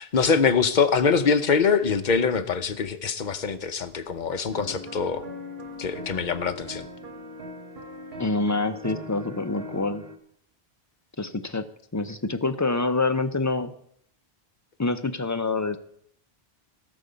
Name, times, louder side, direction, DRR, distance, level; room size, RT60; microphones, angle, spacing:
voice 1, 0.0-5.2 5.8-6.9, left 5 dB, 50° left, 9 dB, 0.9 m, -23 dB
sound 1, 4.5-10.2, left 1 dB, 70° right, 1.5 m, -40 dB
voice 2, 8.2-10.0 11.2-11.7 11.9-13.7 14.8-15.8, left 3 dB, 20° left, 9 dB, 0.5 m, -26 dB
17.5 x 6.8 x 5.1 m, 0.68 s
omnidirectional pair, 1.1 m